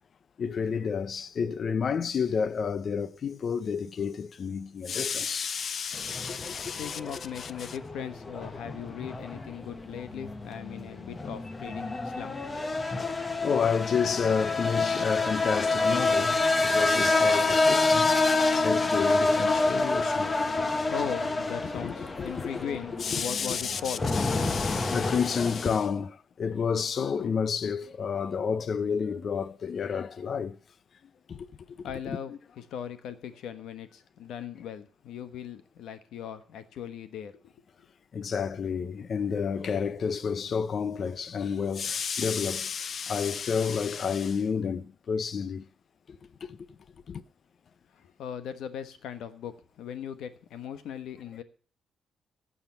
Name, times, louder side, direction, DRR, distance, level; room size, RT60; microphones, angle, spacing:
voice 1, 0.4-7.7 13.1-16.4 16.6-18.1 18.5-20.4 21.8-22.5 23.0-30.6 31.3-31.5 32.1-32.2 38.1-45.6 46.1-46.6 47.1-47.2, left 6 dB, 45° left, 0.6 m, -30 dB
sound 1, 5.9-25.7, left 3 dB, 20° left, 0.9 m, -28 dB
voice 2, 6.8-12.6 20.5-24.1 31.8-37.5 47.9-51.4, left 8 dB, 85° left, 1.2 m, -39 dB
12.0 x 7.1 x 6.9 m
cardioid pair, 150°, 0 cm